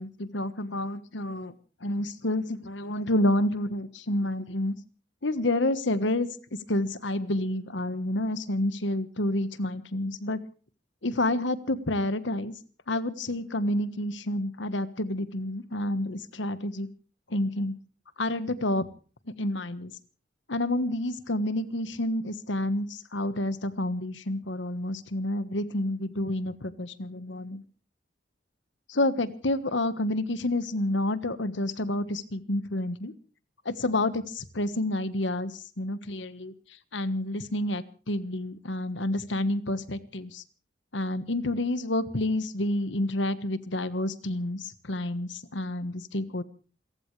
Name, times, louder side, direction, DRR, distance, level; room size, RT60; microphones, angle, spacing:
voice 1, 0.0-1.5 1.8-4.7 5.2-6.3 6.7-10.4 11.0-12.5 12.9-16.9 17.3-17.8 18.2-18.8 19.4-19.9 20.5-27.6 28.9-33.1 33.6-36.5 36.9-40.4 40.9-46.4, left 1 dB, 75° left, 13 dB, 1.4 m, -29 dB
28.5 x 15.0 x 3.3 m, 0.38 s
head